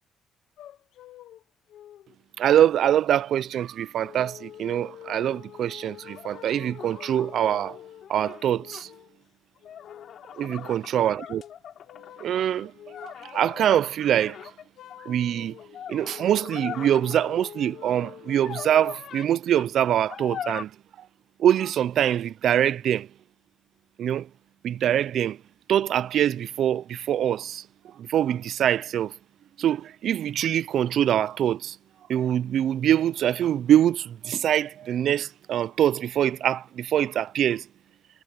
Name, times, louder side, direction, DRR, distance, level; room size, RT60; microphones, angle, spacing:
sound 1, 0.6-1.4 1.7-2.2 2.9-3.0 4.0-9.2 9.6-10.9 11.2-11.5 11.9-12.3 12.6-13.7 14.0-19.0, left 11 dB, 80° left, 0.8 m, -46 dB
voice 1, 2.4-7.8 8.1-8.9 10.4-11.4 12.2-12.7 13.0-14.5 15.1-15.6 15.9-20.7 21.0-21.1 21.4-23.1 24.0-24.3 24.6-25.4 25.7-29.1 29.6-31.8 32.1-37.7, right 10 dB, 65° right, 0.4 m, -24 dB
sound 2, 6.1-8.8 9.6-12.3 12.9-15.0 15.6-17.3 18.3-19.3 19.6-19.7 20.1-20.6, left 9 dB, 60° left, 4.6 m, -41 dB
cardioid pair, 120°, 0 cm